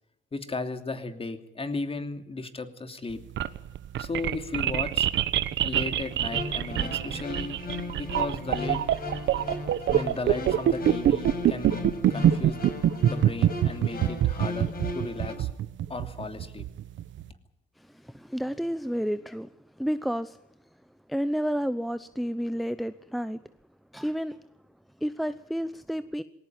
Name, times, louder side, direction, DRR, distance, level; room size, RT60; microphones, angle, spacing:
voice 1, 0.3-3.2 4.0-5.1 5.6-7.6 7.9-8.8 9.9-12.6 13.1-15.5 15.9-16.7, left 3 dB, 30° left, 7 dB, 2.9 m, -35 dB
sound 1, 3.1-17.2, right 11 dB, 70° right, 1.2 m, -25 dB
sound 2, 6.1-15.3, left 2 dB, 50° left, 6.3 m, -37 dB
voice 2, 17.8-19.5 19.8-20.4 21.1-23.4 23.9-24.4 25.0-26.2, equal, ahead, 13 dB, 0.8 m, -30 dB
20.5 x 18.0 x 9.1 m, 0.82 s
cardioid pair, 90°, 20 cm